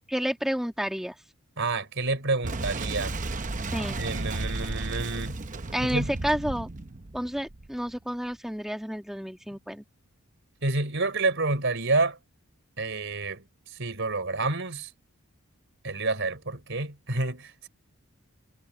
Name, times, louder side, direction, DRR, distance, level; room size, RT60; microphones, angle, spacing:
voice 1, 0.1-1.1 3.7-4.0 5.7-6.7 7.1-9.8, equal, ahead, 1.4 m, -30 dB
voice 2, 1.6-3.2 4.0-5.4 5.8-6.1 10.6-12.2 12.8-13.4 13.8-14.9 15.8-17.7, right 3 dB, 55° right, 3.8 m, -28 dB
Boom, 2.4-8.0, right 2 dB, 35° right, 0.8 m, -33 dB
head